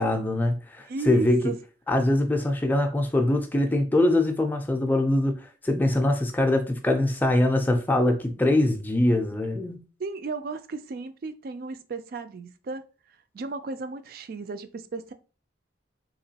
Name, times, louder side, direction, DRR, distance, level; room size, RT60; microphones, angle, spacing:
voice 1, 0.0-1.5 1.9-9.8, left 1 dB, 10° left, 0.4 m, -23 dB
voice 2, 0.9-1.6 10.0-12.8 13.3-15.1, right 3 dB, 50° right, 0.4 m, -34 dB
3.5 x 3.0 x 2.8 m
head